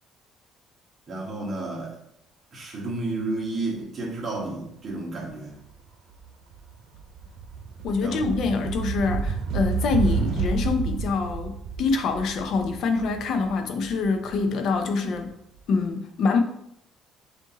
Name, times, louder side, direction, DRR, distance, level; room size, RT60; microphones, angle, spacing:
voice 1, 1.1-2.0 2.5-5.5 8.0-8.3, right 2 dB, 30° right, 1.4 m, -31 dB
sound 1, 5.6-5.9 6.2-15.1, right 5 dB, 85° right, 0.7 m, -30 dB
voice 2, 7.8-15.3 15.7-16.4, left 4 dB, 55° left, 0.5 m, -25 dB
6.2 x 2.6 x 2.9 m
cardioid pair, 150°, 0 cm